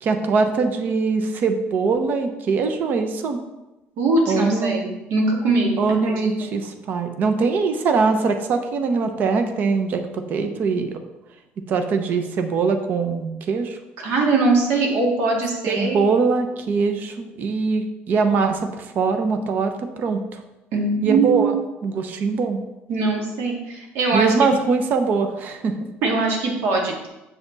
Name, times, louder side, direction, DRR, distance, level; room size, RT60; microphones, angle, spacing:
voice 1, 0.0-3.4 4.3-4.8 5.8-11.0 11.7-13.8 15.7-20.4 21.0-21.6 21.8-22.6 24.1-25.9, right 4 dB, 40° right, 7 dB, 0.8 m, -22 dB
voice 2, 4.0-5.7 6.1-6.3 14.0-16.0 20.7-21.6 22.9-24.3 26.0-27.1, right 3 dB, 65° right, 0 dB, 2.2 m, -21 dB
7.7 x 7.2 x 4.0 m, 0.99 s
cardioid pair, 165°, 5 cm